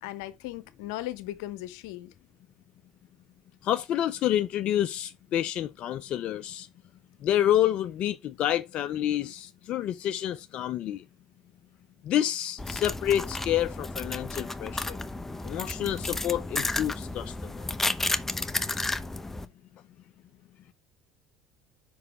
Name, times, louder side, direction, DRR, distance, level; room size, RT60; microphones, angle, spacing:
voice 1, 0.0-2.1, left 15 dB, 75° left, 0.8 m, -37 dB
voice 2, 3.6-6.7 7.2-11.0 12.0-15.0 15.4-17.5, left 11 dB, 55° left, 0.5 m, -28 dB
sound 1, 12.6-19.5, left 2 dB, 15° left, 0.8 m, -32 dB
5.5 x 4.8 x 4.9 m
hypercardioid pair, 70°, 2 cm